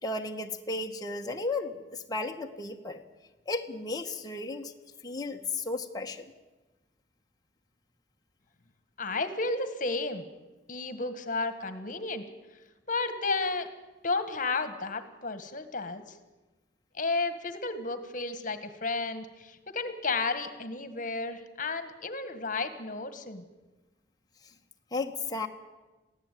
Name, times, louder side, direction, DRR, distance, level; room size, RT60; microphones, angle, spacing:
voice 1, 0.0-3.0 3.5-4.7 5.0-6.3 24.9-25.5, left 3 dB, 20° left, 2 dB, 1.5 m, -34 dB
voice 2, 9.0-10.2 10.7-12.2 12.9-13.7 14.0-16.0 16.9-23.4, left 3 dB, 50° left, 10 dB, 1.8 m, -32 dB
22.5 x 15.5 x 9.4 m, 1.1 s
head